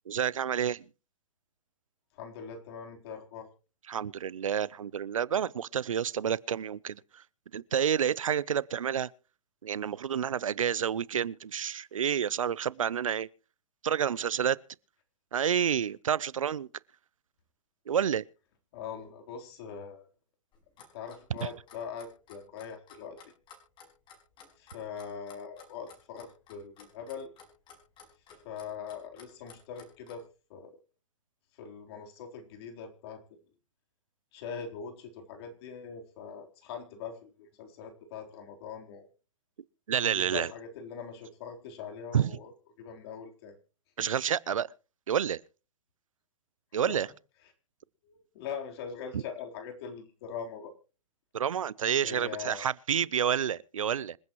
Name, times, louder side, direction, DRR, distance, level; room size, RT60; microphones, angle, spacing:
voice 1, 0.1-0.8 3.9-7.2 7.5-9.1 9.6-13.3 13.8-14.6 15.3-16.7 17.9-18.2 21.4-21.5 39.9-40.5 42.1-42.3 44.0-44.7 45.1-45.4 46.7-47.1 49.1-49.2 51.3-54.2, right 8 dB, 90° right, 0.6 m, -29 dB
voice 2, 2.2-3.5 18.7-20.0 20.9-23.2 24.6-27.3 28.4-30.2 30.5-30.8 31.6-33.2 34.3-39.1 40.0-42.5 42.8-43.6 46.9-47.0 48.0-50.7 52.0-52.7, left 6 dB, 50° left, 3.7 m, -42 dB
Clock, 20.5-30.2, left 6 dB, 30° left, 5.3 m, -53 dB
26.5 x 9.4 x 3.0 m
hypercardioid pair, 130°, 16 cm